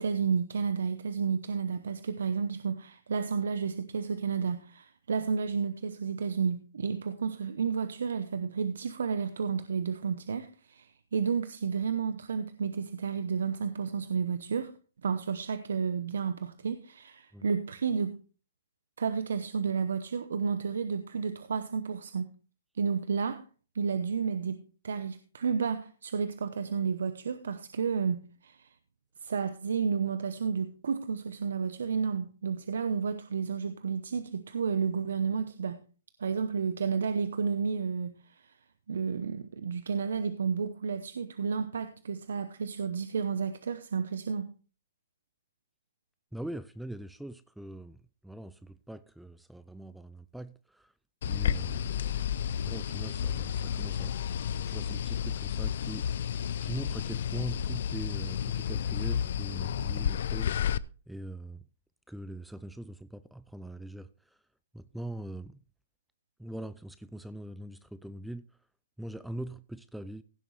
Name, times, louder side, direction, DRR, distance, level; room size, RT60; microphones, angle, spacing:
voice 1, 0.0-14.7 15.0-18.2 19.0-22.3 22.7-23.4 23.7-28.7 29.2-35.8 36.2-38.5 38.9-44.5, right 6 dB, 85° right, 0.8 m, -31 dB
voice 2, 46.3-48.0 48.2-50.9 51.3-52.2 52.6-54.1 54.5-56.1 56.6-61.6 62.1-64.4 64.7-65.6 66.4-68.4 69.0-70.2, right 1 dB, ahead, 0.4 m, -42 dB
sound 1, 51.2-60.8, left 9 dB, 65° left, 0.4 m, -31 dB
16.0 x 7.1 x 3.2 m
hypercardioid pair, 145°, 0 cm